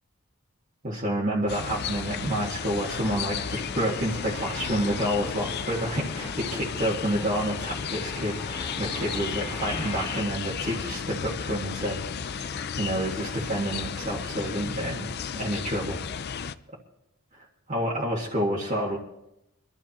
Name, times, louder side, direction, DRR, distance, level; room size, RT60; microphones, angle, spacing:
voice 1, 0.8-16.0 17.7-19.0, equal, 35° right, -6 dB, 1.8 m, -29 dB
sound 1, 1.4-10.2, left 2 dB, 25° left, 1.2 m, -41 dB
sound 2, 1.5-16.5, left 6 dB, 45° left, 0.4 m, -34 dB
24.5 x 12.5 x 3.0 m, 0.83 s
head